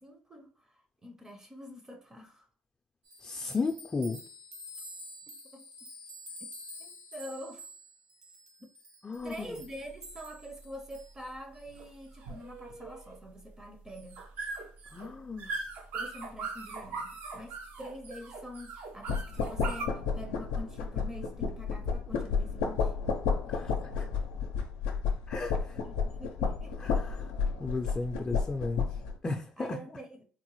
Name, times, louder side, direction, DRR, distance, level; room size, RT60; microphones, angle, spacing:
voice 1, 0.0-2.5 5.3-5.9 6.8-7.7 8.6-8.7 9.2-14.3 15.9-22.9 25.8-27.0 29.6-30.2, equal, 20° right, 0.6 m, -46 dB
sound 1, 3.0-11.1, left 1 dB, 60° right, 1.2 m, -48 dB
voice 2, 3.2-4.2 9.0-9.6 14.9-15.6 23.5-24.1 25.3-25.8 26.8-27.2 27.6-29.8, left 3 dB, 25° left, 0.4 m, -35 dB
sound 2, 9.2-19.9, right 3 dB, 75° right, 0.7 m, -41 dB
sound 3, 19.1-29.1, left 5 dB, 90° left, 0.5 m, -31 dB
3.9 x 2.1 x 3.0 m
supercardioid pair, 85°, 3 cm